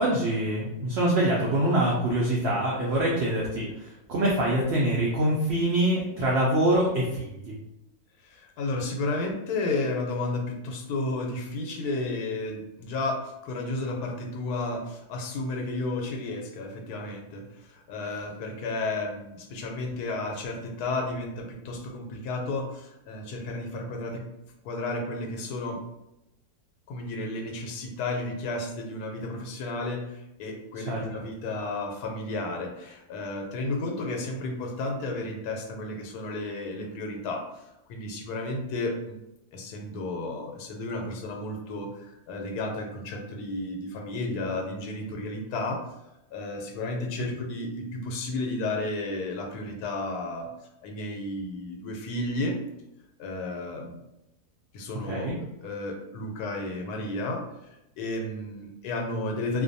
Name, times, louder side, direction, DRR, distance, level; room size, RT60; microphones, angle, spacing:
voice 1, 0.0-7.5 30.9-31.0 55.1-55.3, right 1 dB, 75° right, -4 dB, 0.6 m, -25 dB
voice 2, 8.2-24.3 24.6-25.8 26.9-37.6 37.9-39.2 39.5-45.8 46.3-50.5 50.8-52.6 53.2-54.0 54.7-55.3 55.6-57.4 58.0-59.6, left 2 dB, 85° left, 2 dB, 1.1 m, -32 dB
2.5 x 2.2 x 2.6 m, 0.90 s
omnidirectional pair, 1.6 m